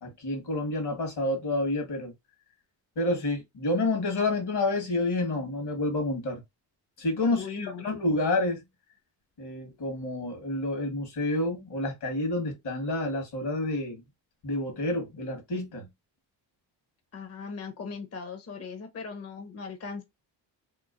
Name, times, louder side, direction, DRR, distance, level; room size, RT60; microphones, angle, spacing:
voice 1, 0.0-2.1 3.0-6.4 7.0-8.6 9.4-14.0 14.4-15.8, left 2 dB, 65° left, 1.5 m, -29 dB
voice 2, 7.3-7.9 17.1-20.0, left 5 dB, 35° left, 0.7 m, -38 dB
3.0 x 2.3 x 2.4 m
cardioid pair, 65°, 43 cm